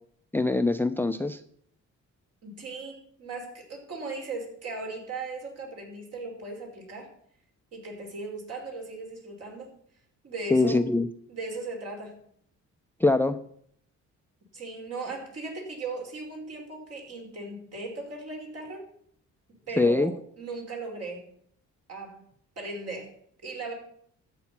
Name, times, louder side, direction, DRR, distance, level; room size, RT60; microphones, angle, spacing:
voice 1, 0.3-1.4 10.5-11.1 13.0-13.4 19.8-20.1, left 2 dB, 5° left, 11 dB, 0.6 m, -23 dB
voice 2, 2.4-7.1 7.7-9.7 10.2-10.8 11.3-12.2 14.5-18.9 19.7-21.2 21.9-22.2 22.6-23.1 23.4-23.7, right 3 dB, 55° right, 1 dB, 5.5 m, -37 dB
13.5 x 8.7 x 5.9 m, 0.65 s
cardioid pair, 90°, 30 cm